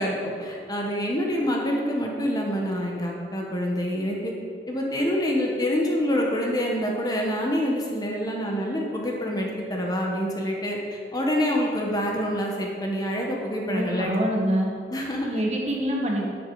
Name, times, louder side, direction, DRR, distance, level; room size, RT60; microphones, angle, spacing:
voice 1, 0.0-4.3 4.7-14.2 14.9-15.3, equal, 20° left, -1 dB, 1.4 m, -26 dB
voice 2, 13.7-14.7 15.2-16.3, equal, 40° right, -1 dB, 1.7 m, -25 dB
10.5 x 10.0 x 5.0 m, 2.3 s
head